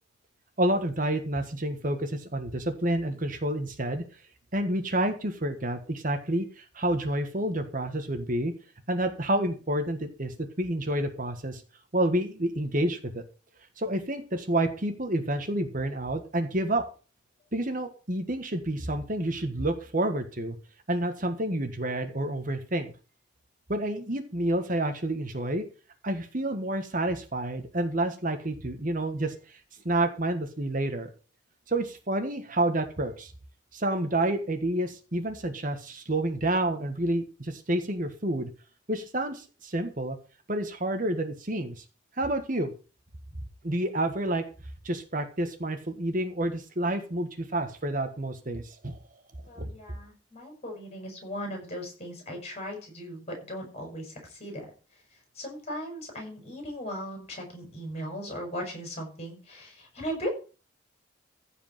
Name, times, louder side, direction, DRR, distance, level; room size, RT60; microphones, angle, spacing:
voice 1, 0.6-4.0 4.5-8.5 8.9-11.6 11.9-13.2 13.8-16.8 17.5-20.6 20.9-22.9 23.7-25.6 26.0-29.6 29.8-31.1 31.7-33.3 33.7-38.5 38.9-40.2 40.5-41.8 42.2-42.7 43.6-44.4 44.8-49.0 49.6-49.7, right 1 dB, 45° right, 7 dB, 1.5 m, -29 dB
voice 2, 49.5-54.1 54.4-54.6 55.4-60.3, equal, 35° left, 2 dB, 6.8 m, -37 dB
15.0 x 5.1 x 7.7 m, 0.36 s
head